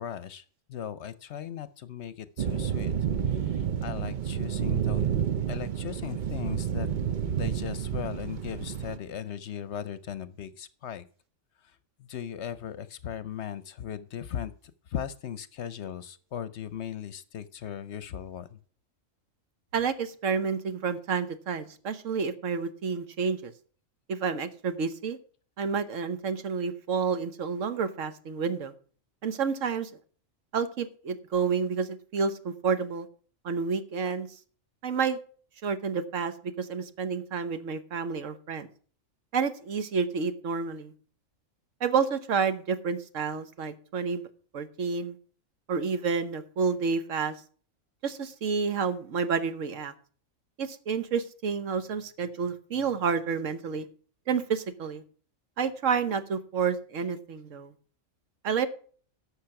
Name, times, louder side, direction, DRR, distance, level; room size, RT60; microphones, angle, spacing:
voice 1, 0.0-2.9 3.3-5.1 5.5-6.9 7.3-11.1 12.0-14.5 14.9-18.6, left 9 dB, 60° left, 16 dB, 0.9 m, -38 dB
sound 1, 2.4-9.0, right 8 dB, 50° right, 0.6 m, -30 dB
voice 2, 19.7-23.5 24.1-25.2 25.6-28.7 29.2-29.9 30.5-33.1 33.4-34.3 34.8-35.2 35.6-38.7 39.3-40.9 41.8-44.3 44.5-45.2 45.7-47.4 48.0-49.9 50.6-53.9 54.3-55.0 55.6-57.7 58.4-58.7, right 5 dB, 70° right, 11 dB, 1.3 m, -29 dB
11.5 x 6.8 x 5.8 m, 0.44 s
omnidirectional pair, 1.4 m